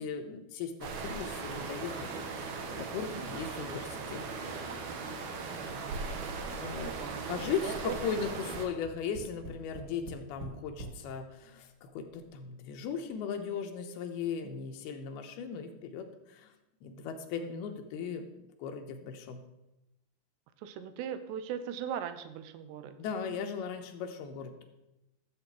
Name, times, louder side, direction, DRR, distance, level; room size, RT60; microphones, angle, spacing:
voice 1, 0.0-4.2 6.6-6.9 7.3-16.5 16.8-19.4 23.0-24.6, left 6 dB, 80° left, 5 dB, 2.8 m, -38 dB
sound 1, 0.8-8.7, right 4 dB, 70° right, 3.0 m, -38 dB
voice 2, 5.6-7.4 7.6-8.0 14.4-14.7 17.4-17.6 20.6-23.0, right 9 dB, 90° right, 11 dB, 2.9 m, -40 dB
Tap, 8.2-11.0 11.8-11.9 12.2-12.3, right 2 dB, 35° right, 2.3 m, -44 dB
12.5 x 7.5 x 4.7 m, 0.93 s
omnidirectional pair, 4.7 m